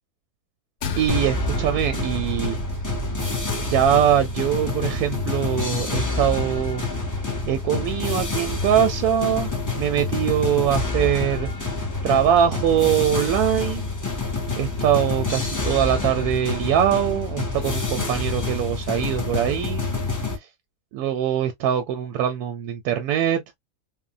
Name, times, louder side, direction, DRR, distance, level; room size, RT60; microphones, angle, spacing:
sound 1, 0.8-5.4, right 3 dB, 60° left, 0.8 m, -34 dB
voice 1, 1.0-2.6 3.6-6.8 7.5-11.5 12.0-13.8 14.6-19.8 20.9-23.4, right 10 dB, 85° right, 1.1 m, -22 dB
sound 2, 1.1-20.4, left 3 dB, 30° left, 0.3 m, -27 dB
3.3 x 2.1 x 2.4 m
omnidirectional pair, 1.6 m